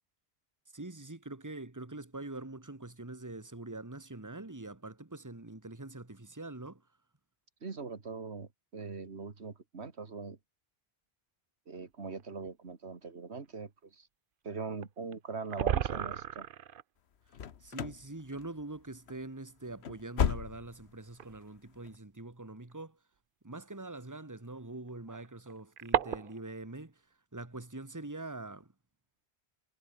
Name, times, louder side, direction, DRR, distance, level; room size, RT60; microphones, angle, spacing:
voice 1, 0.7-6.9 17.3-23.0 23.4-27.0 27.3-28.7, right 2 dB, 15° right, 1.8 m, -44 dB
voice 2, 7.6-10.4 11.7-14.1 14.4-16.5, right 4 dB, 85° right, 2.2 m, -42 dB
sound 1, 12.2-12.3 14.8-14.9 15.1-15.2 15.4-16.8 18.2-18.3 19.2-19.3 21.2-21.4 22.7-22.8 24.9-26.5, right 9 dB, 60° right, 0.9 m, -33 dB
sound 2, 17.3-18.1 18.3-18.8 19.1-19.2 19.7-20.9 21.2-21.3 21.8-22.0, left 8 dB, 80° left, 1.3 m, -34 dB
omnidirectional pair, 1.1 m